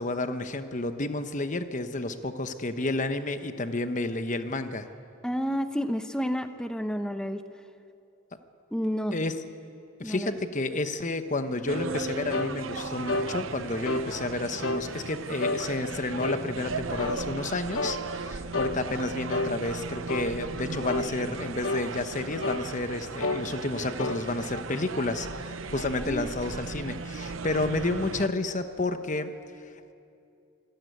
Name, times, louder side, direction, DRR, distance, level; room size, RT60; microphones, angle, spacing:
voice 1, 0.0-4.9 9.1-9.4 10.0-29.3, left 2 dB, 40° left, 9 dB, 1.1 m, -31 dB
voice 2, 5.2-7.4 8.7-9.2 10.0-10.3 26.0-26.3, equal, 5° left, 8 dB, 0.9 m, -30 dB
sound 1, 11.6-14.2, right 2 dB, 35° right, 1.2 m, -39 dB
sound 2, 11.7-28.3, right 4 dB, 75° right, 0.8 m, -37 dB
sound 3, 12.3-12.5 13.1-13.3 13.9-14.1 14.6-14.9 15.4-15.6 16.2-16.4 17.0-17.2 17.8-18.0 18.5-18.8 19.3-19.5 20.1-20.3 20.9-21.1 21.6-21.9 22.4-22.7 23.2-23.4 24.0-24.2, left 2 dB, 90° left, 1.2 m, -29 dB
25.0 x 15.0 x 9.3 m, 2.6 s
head